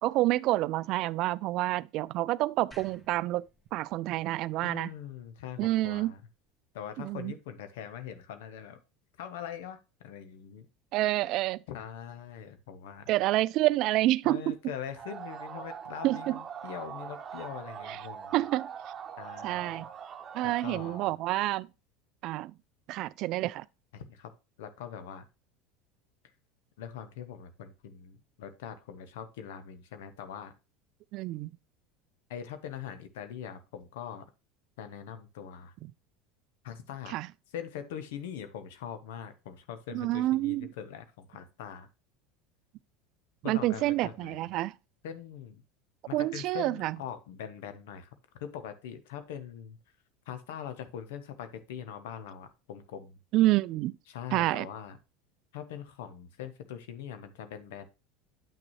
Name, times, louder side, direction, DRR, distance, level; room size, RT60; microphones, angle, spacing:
voice 1, 0.0-4.9 5.6-6.1 7.0-7.3 10.9-11.6 13.1-14.6 16.0-16.4 17.9-18.0 18.3-18.7 19.4-19.9 20.3-21.7 22.2-22.5 22.9-23.7 31.1-31.5 37.1-37.3 39.9-40.7 43.4-44.7 46.1-47.0 53.3-54.0 54.3-54.7, right 16 dB, 55° right, 0.3 m, -28 dB
sound 1, 2.7-5.9, equal, 5° left, 1.9 m, -58 dB
voice 2, 4.6-6.2 6.7-8.8 9.2-10.7 11.7-13.1 14.2-18.3 19.2-19.9 20.4-21.1 23.9-24.3 24.6-25.2 26.8-30.5 32.3-34.3 34.8-35.7 36.6-37.2 37.5-41.9 43.4-44.5 45.0-45.6 46.1-49.8 50.3-53.2 54.1-55.0 55.5-57.9, left 9 dB, 75° left, 0.9 m, -42 dB
sound 2, 15.0-21.1, right 7 dB, 35° right, 1.0 m, -42 dB
8.9 x 6.1 x 3.1 m
hypercardioid pair, 85°, 0 cm